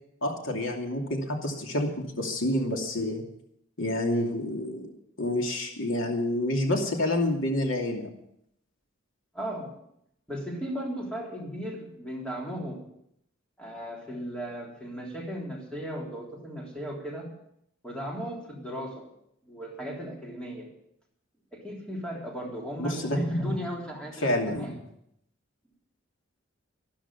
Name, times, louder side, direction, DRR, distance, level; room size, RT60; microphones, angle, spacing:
voice 1, 0.2-3.2 3.8-4.9 5.2-8.1 22.8-23.2 24.2-24.7, left 1 dB, 75° left, 2 dB, 2.7 m, -28 dB
voice 2, 9.3-9.7 10.3-12.8 13.6-17.3 17.8-19.1 19.4-20.7 21.5-24.8, equal, 5° left, -2 dB, 3.6 m, -35 dB
13.5 x 13.0 x 7.1 m, 0.74 s
head